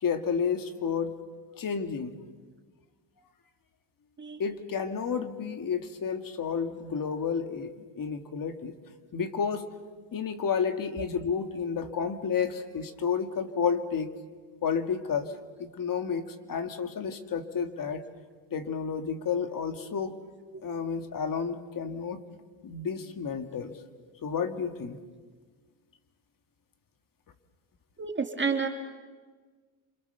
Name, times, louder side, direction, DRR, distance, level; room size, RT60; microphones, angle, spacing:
voice 1, 0.0-1.1 1.6-2.1 4.4-8.7 9.1-9.6 10.1-14.1 14.6-15.3 15.6-18.0 18.5-20.2 20.6-22.2 22.6-23.7 24.2-25.0, left 6 dB, 45° left, 8 dB, 2.3 m, -31 dB
voice 2, 28.0-28.7, right 5 dB, 25° right, 4 dB, 2.2 m, -29 dB
28.5 x 26.5 x 6.9 m, 1.4 s
cardioid pair, 110°, 46 cm